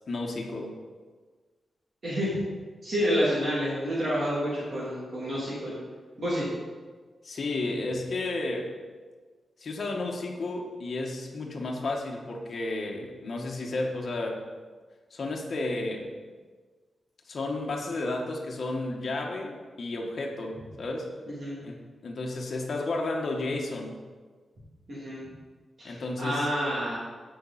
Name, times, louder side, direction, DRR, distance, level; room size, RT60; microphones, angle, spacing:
voice 1, 0.1-0.8 7.2-8.7 9.6-14.4 15.1-16.1 17.3-21.1 21.6-24.0 25.8-26.5, left 2 dB, 50° left, 0 dB, 1.6 m, -32 dB
voice 2, 2.0-2.4 2.8-5.7 6.2-6.5 21.3-21.5 24.9-25.2 25.8-26.9, equal, 40° right, -9 dB, 3.3 m, -29 dB
16.0 x 6.1 x 4.3 m, 1.4 s
wide cardioid pair, 155°, 0 cm